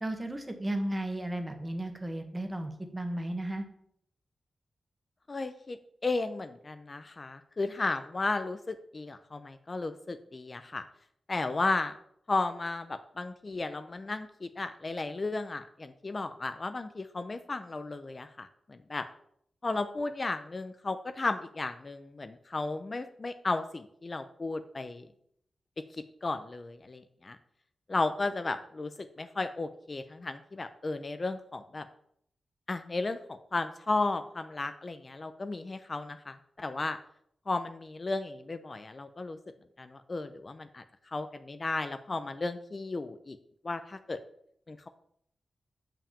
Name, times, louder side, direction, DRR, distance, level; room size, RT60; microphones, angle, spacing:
voice 1, 0.0-3.7, right 1 dB, 20° right, 6 dB, 1.4 m, -34 dB
voice 2, 5.3-10.8 11.3-11.9 12.3-19.1 19.6-25.1 26.2-27.4 27.9-31.9 32.7-37.0 37.5-39.4 39.8-40.8 41.1-43.4 43.6-44.2 44.7-44.9, left 3 dB, 35° left, 10 dB, 0.5 m, -34 dB
7.1 x 5.9 x 7.0 m, 0.70 s
wide cardioid pair, 100°, 0 cm